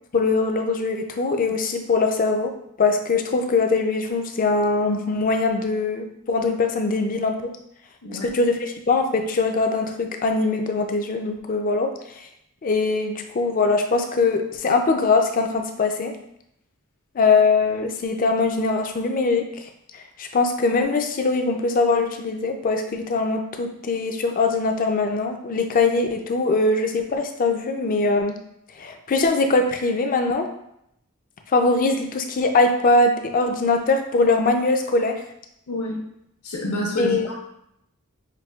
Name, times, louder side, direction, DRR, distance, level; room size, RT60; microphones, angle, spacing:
voice 1, 0.1-2.5 2.8-7.5 8.2-12.3 12.6-16.1 17.1-28.4 28.8-30.5 31.5-35.2 37.0-37.3, left 3 dB, 40° left, 5 dB, 0.4 m, -22 dB
voice 2, 35.7-36.0 36.4-37.4, left 1 dB, 75° left, -3 dB, 0.9 m, -28 dB
5.9 x 2.7 x 2.3 m, 0.77 s
head